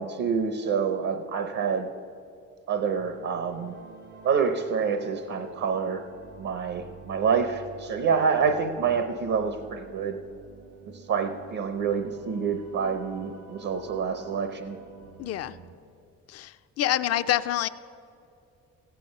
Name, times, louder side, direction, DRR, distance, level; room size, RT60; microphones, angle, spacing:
voice 1, 0.0-1.9 2.7-3.8 4.2-6.0 6.4-10.2 11.1-14.8, right 6 dB, 70° right, 8 dB, 0.8 m, -27 dB
sound 1, 3.0-15.8, right 4 dB, 85° right, 1.6 m, -48 dB
voice 2, 15.2-15.5 16.3-17.7, left 13 dB, 55° left, 13 dB, 0.4 m, -27 dB
15.0 x 9.2 x 5.3 m, 2.5 s
cardioid pair, 90°, 30 cm